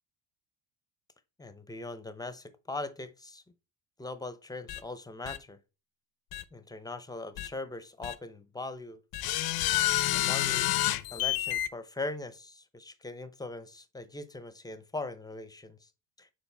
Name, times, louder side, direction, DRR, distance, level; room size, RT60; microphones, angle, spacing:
voice 1, 1.4-3.4 4.0-5.6 6.5-9.0 10.1-10.7 11.1-15.9 16.2-16.3, left 2 dB, 10° left, 0.7 m, -40 dB
sound 1, 4.7-4.8 5.3-5.4 6.3-6.4 7.4-7.5 8.0-8.1 9.1-11.7, left 15 dB, 50° left, 0.7 m, -29 dB
7.3 x 4.5 x 3.4 m
cardioid pair, 110°, 46 cm